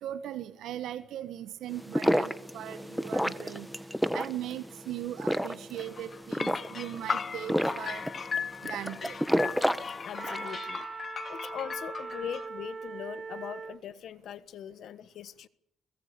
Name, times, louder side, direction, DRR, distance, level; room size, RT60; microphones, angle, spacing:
voice 1, 0.0-3.7 4.1-8.1 8.6-9.2, right 12 dB, 80° right, 1.4 m, -39 dB
sound 1, 1.7-10.5, equal, ahead, 1.3 m, -30 dB
sound 2, 5.8-12.5, left 6 dB, 40° left, 1.2 m, -37 dB
voice 2, 10.0-10.9 11.3-15.5, left 9 dB, 70° left, 1.3 m, -41 dB
Wind instrument woodwind instrument, 10.1-13.8, right 5 dB, 45° right, 0.9 m, -41 dB
23.0 x 21.0 x 6.9 m
cardioid pair, 90°, 0 cm